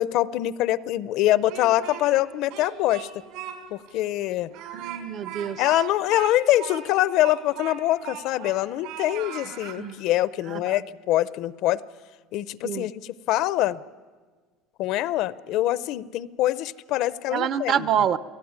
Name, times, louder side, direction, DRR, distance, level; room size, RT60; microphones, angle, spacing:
voice 1, 0.0-3.1 3.7-4.5 5.6-11.8 12.3-13.8 14.8-17.9, left 14 dB, 55° left, 18 dB, 0.7 m, -24 dB
Speech, 1.3-2.2 2.5-3.6 3.9-4.0 4.5-8.6 8.8-9.8, right 11 dB, 70° right, 5.0 m, -38 dB
voice 2, 4.7-5.6 9.8-10.0 10.5-10.8 12.6-12.9 17.3-18.2, right 8 dB, 35° right, 15 dB, 0.8 m, -26 dB
29.0 x 18.0 x 9.6 m, 1.5 s
cardioid pair, 165°, 0 cm